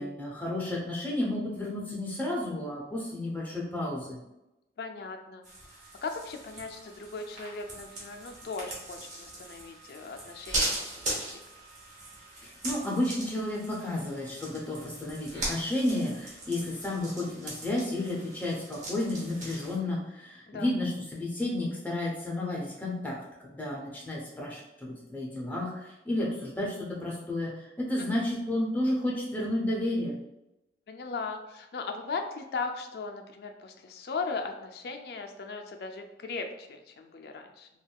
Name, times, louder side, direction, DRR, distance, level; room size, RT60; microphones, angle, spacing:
voice 1, 0.0-4.2 12.4-30.1, left 1 dB, 10° left, -4 dB, 0.6 m, -32 dB
voice 2, 4.8-5.4 6.0-11.2 20.5-20.7 28.0-28.2 30.9-37.7, left 4 dB, 60° left, 5 dB, 0.3 m, -38 dB
sound 1, 5.4-19.8, right 1 dB, 45° right, 0.9 m, -39 dB
3.5 x 2.3 x 2.2 m, 0.93 s
head